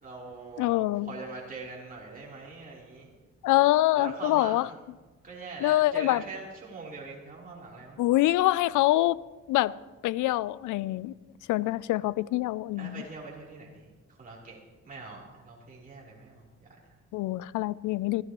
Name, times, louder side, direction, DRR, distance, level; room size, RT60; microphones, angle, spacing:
voice 1, 0.0-3.1 4.0-4.8 5.2-8.0 12.8-14.6 14.8-17.0, right 3 dB, 30° right, 3.6 m, -43 dB
voice 2, 0.6-1.1 3.4-4.7 5.6-6.2 8.0-9.2 9.5-9.8 10.0-11.1 11.5-13.0 17.1-18.2, left 16 dB, 80° left, 0.4 m, -25 dB
22.0 x 14.5 x 3.0 m
cardioid pair, 90°, 30 cm